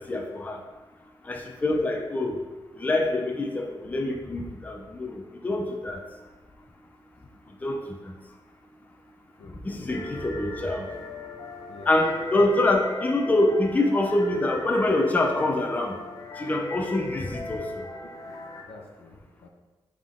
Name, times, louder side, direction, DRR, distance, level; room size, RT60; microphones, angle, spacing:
voice 1, 0.1-0.6 1.3-2.4 2.8-6.0 7.6-7.8 9.6-10.9 11.9-15.9 16.4-17.7, left 2 dB, 15° left, 1 dB, 0.6 m, -25 dB
voice 2, 9.4-10.4 11.7-11.9 12.2-12.4 18.0-18.3 18.7-19.5, left 3 dB, 90° left, 1 dB, 1.0 m, -49 dB
sound 1, 9.9-18.6, left 2 dB, 40° left, 1.0 m, -38 dB
7.4 x 3.7 x 3.6 m, 1.2 s
wide cardioid pair, 155°, 9 cm